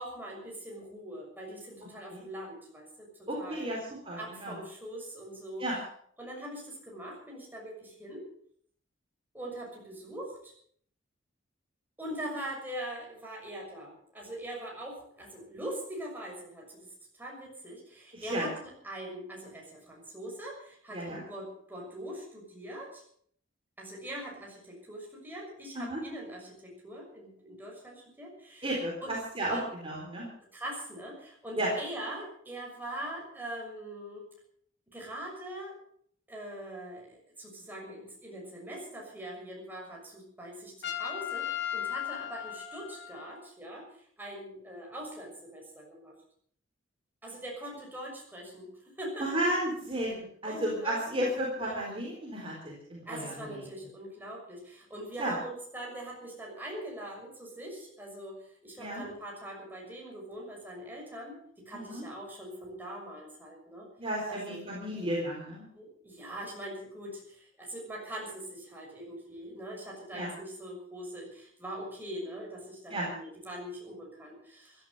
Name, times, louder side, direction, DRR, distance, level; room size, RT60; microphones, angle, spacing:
voice 1, 0.0-3.7 4.2-5.6 6.2-8.2 9.3-10.5 12.0-16.9 17.2-23.0 23.8-28.7 29.0-29.1 29.5-29.6 30.5-34.2 34.9-35.8 36.3-43.9 44.2-46.1 47.2-48.7 49.0-49.3 50.0-50.1 50.4-51.2 51.6-51.8 53.0-63.9 64.3-64.6 65.7-74.9, right 1 dB, 10° right, -2 dB, 6.4 m, -42 dB
voice 2, 3.3-4.6 5.6-5.8 18.1-18.5 20.9-21.2 25.7-26.0 28.6-30.3 31.6-31.7 49.2-53.7 55.2-55.4 58.8-59.0 61.7-62.0 64.0-65.6 70.1-70.3 72.9-73.1, right 1 dB, 30° right, -3 dB, 4.1 m, -33 dB
Trumpet, 40.8-43.5, left 10 dB, 60° left, 2.1 m, -36 dB
16.0 x 12.5 x 6.8 m, 0.63 s
head